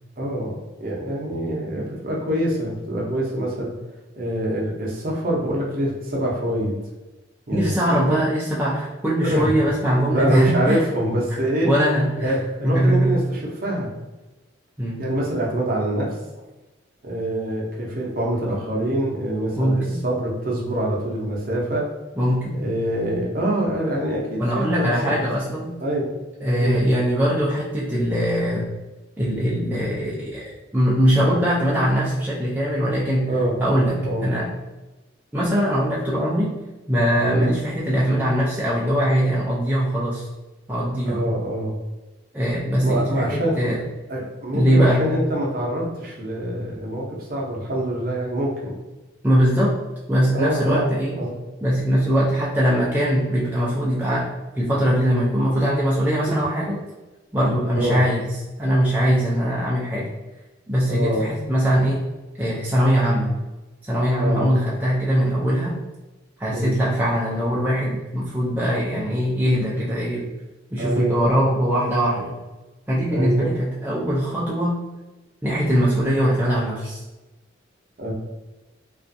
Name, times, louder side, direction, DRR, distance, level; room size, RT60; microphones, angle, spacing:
voice 1, 0.2-0.5 0.8-3.7 4.2-6.8 7.5-7.7 8.1-8.2 9.2-9.5 10.1-11.7 12.2-13.9 15.0-16.1 17.0-21.9 22.6-25.1 25.8-26.1 26.6-26.8 33.3-33.6 34.0-34.3 37.2-37.5 41.1-41.8 42.8-43.7 44.1-48.7 50.3-51.4 57.8-58.0 60.9-61.3 64.2-64.5 66.5-66.8 70.8-71.3 73.1-73.5 78.0-78.1, right 1 dB, 50° right, -3 dB, 0.6 m, -25 dB
voice 2, 7.5-10.8 11.6-12.4 12.6-13.2 14.8-15.0 19.6-20.0 22.2-22.6 24.4-25.7 26.4-28.7 29.2-30.4 30.7-33.3 33.6-34.5 35.3-36.6 36.9-40.3 40.7-41.3 42.3-43.8 44.5-45.1 49.2-49.8 50.1-51.2 51.6-56.8 57.3-58.3 58.6-60.1 60.7-62.0 62.4-63.4 63.8-65.8 66.4-70.3 70.7-72.4 72.9-74.8 75.4-77.0, equal, 10° right, -7 dB, 0.4 m, -21 dB
2.4 x 2.3 x 2.6 m, 1.1 s
head